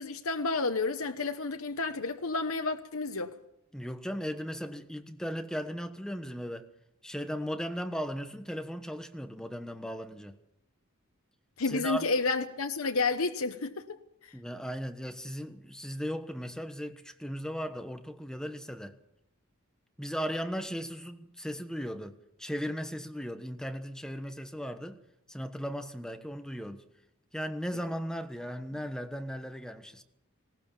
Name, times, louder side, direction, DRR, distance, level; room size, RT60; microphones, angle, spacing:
voice 1, 0.0-3.3 11.6-14.0 14.2-14.3 28.7-28.8, left 3 dB, 75° left, 1.1 m, -30 dB
voice 2, 3.7-6.7 7.0-10.4 11.7-12.1 14.3-18.9 20.0-25.0 25.3-26.8 27.3-30.0, equal, 5° left, 1.2 m, -37 dB
20.0 x 18.0 x 7.2 m
head